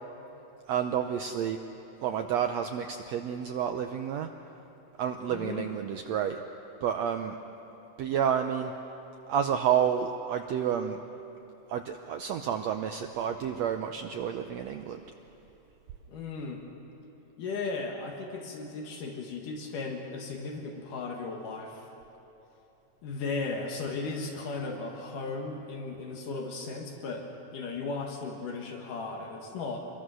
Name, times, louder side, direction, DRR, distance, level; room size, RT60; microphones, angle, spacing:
voice 1, 0.7-1.6 2.0-4.3 5.0-6.4 6.8-7.4 8.0-8.7 9.3-11.0 11.7-15.0, right 8 dB, 85° right, 6 dB, 1.5 m, -30 dB
voice 2, 5.3-5.7 16.1-16.6 17.4-21.9 23.0-29.8, left 3 dB, 70° left, 1 dB, 3.1 m, -36 dB
26.0 x 22.0 x 6.3 m, 3.0 s
omnidirectional pair, 4.0 m